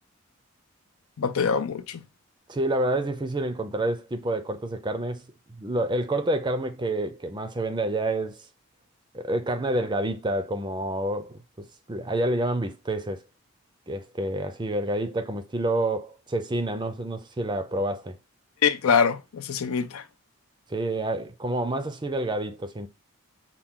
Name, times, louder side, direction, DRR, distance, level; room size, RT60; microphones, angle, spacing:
voice 1, 1.2-2.0 18.6-20.0, left 6 dB, 75° left, 0.5 m, -24 dB
voice 2, 2.5-5.2 5.6-8.5 9.1-13.2 13.9-18.2 20.7-22.9, right 1 dB, 20° right, 0.5 m, -28 dB
5.8 x 2.3 x 3.6 m
head